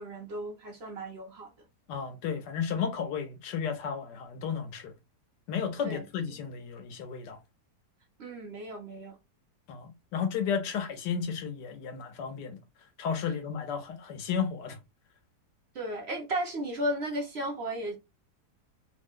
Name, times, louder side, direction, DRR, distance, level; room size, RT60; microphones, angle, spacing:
voice 1, 0.0-1.5 5.8-6.0 8.2-9.2 15.7-18.0, right 1 dB, 55° right, 0.7 m, -34 dB
voice 2, 1.9-4.9 5.5-7.4 9.7-12.6 13.0-14.8, left 7 dB, 85° left, 1.4 m, -33 dB
3.2 x 2.1 x 3.5 m
omnidirectional pair, 1.8 m